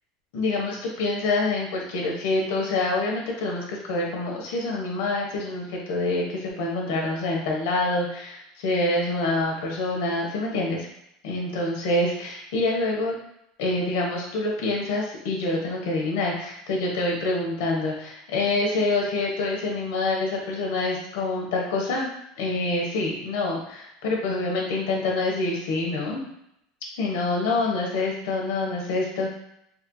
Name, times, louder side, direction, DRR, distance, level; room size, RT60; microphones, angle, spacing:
voice 1, 0.3-10.9 11.2-13.1 13.6-22.1 22.4-26.3 27.0-29.3, left 2 dB, 75° left, -1 dB, 1.0 m, -26 dB
4.2 x 2.7 x 2.2 m, 0.78 s
cardioid pair, 170°, 0 cm